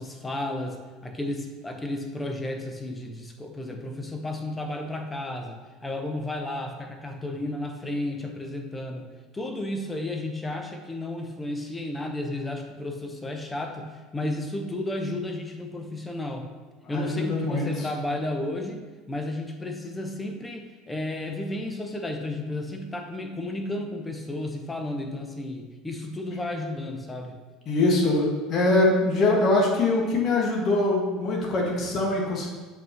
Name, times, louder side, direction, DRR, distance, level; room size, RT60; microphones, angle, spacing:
voice 1, 0.0-16.5 16.9-27.4, left 1 dB, 15° left, 4 dB, 1.0 m, -33 dB
voice 2, 16.8-17.9 27.6-32.5, left 2 dB, 45° left, -1 dB, 1.7 m, -23 dB
7.3 x 5.3 x 3.0 m, 1.3 s
hypercardioid pair, 80°, 0 cm